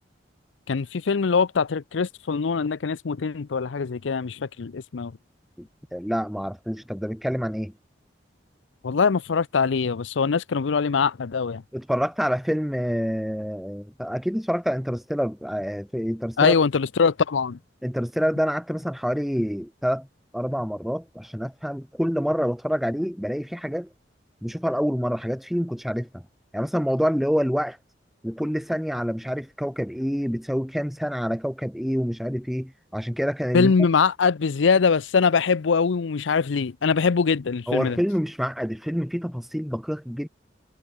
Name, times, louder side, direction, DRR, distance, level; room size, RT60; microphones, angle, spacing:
voice 1, 0.7-5.1 8.8-11.6 16.4-17.6 33.5-38.0, left 5 dB, 85° left, 0.5 m, -22 dB
voice 2, 5.6-7.7 11.7-16.6 17.8-20.1 20.3-23.9 24.4-26.2 26.5-27.8 28.2-33.7 37.7-40.3, equal, ahead, 3.3 m, -27 dB
head